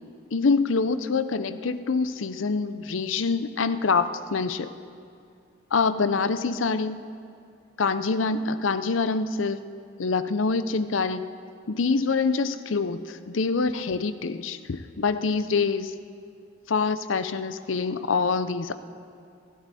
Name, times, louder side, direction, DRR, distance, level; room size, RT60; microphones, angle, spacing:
voice 1, 0.3-4.7 5.7-7.0 7.8-9.6 10.0-11.3 11.7-15.9 16.7-18.8, left 4 dB, 85° left, 12 dB, 0.6 m, -25 dB
28.5 x 11.5 x 4.2 m, 2.4 s
head